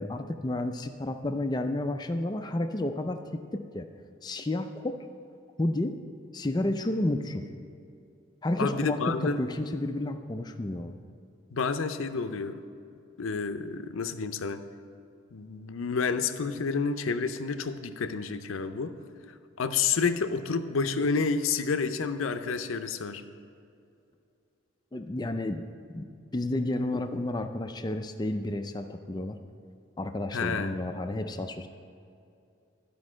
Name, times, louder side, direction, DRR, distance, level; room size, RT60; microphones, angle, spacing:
voice 1, 0.0-3.9 4.2-5.0 5.6-6.0 6.3-7.5 8.4-11.0 24.9-25.7 25.9-26.0 26.3-29.4 30.0-31.7, left 1 dB, 20° left, 7 dB, 0.4 m, -31 dB
voice 2, 8.6-9.4 11.5-12.6 13.2-14.6 15.3-18.9 19.6-23.2 30.3-30.8, left 5 dB, 80° left, 9 dB, 0.5 m, -29 dB
12.0 x 5.3 x 6.1 m, 2.5 s
head